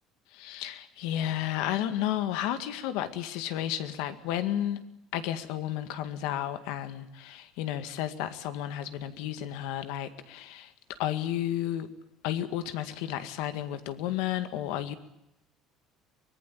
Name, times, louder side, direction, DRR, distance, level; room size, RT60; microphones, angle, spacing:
voice 1, 0.3-4.8 5.1-11.9 12.2-14.9, left 12 dB, 90° left, 10 dB, 2.0 m, -32 dB
24.5 x 19.5 x 8.6 m, 0.84 s
cardioid pair, 165°, 0 cm